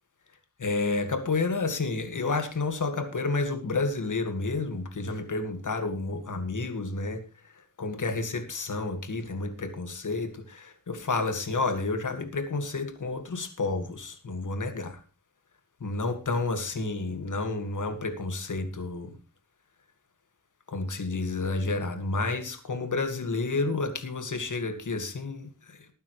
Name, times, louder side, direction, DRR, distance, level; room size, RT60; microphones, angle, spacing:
voice 1, 0.6-7.2 7.8-15.0 15.8-19.1 20.7-25.8, left 3 dB, 65° left, 8 dB, 2.1 m, -30 dB
19.0 x 9.3 x 3.3 m, 0.32 s
wide cardioid pair, 95°, 33 cm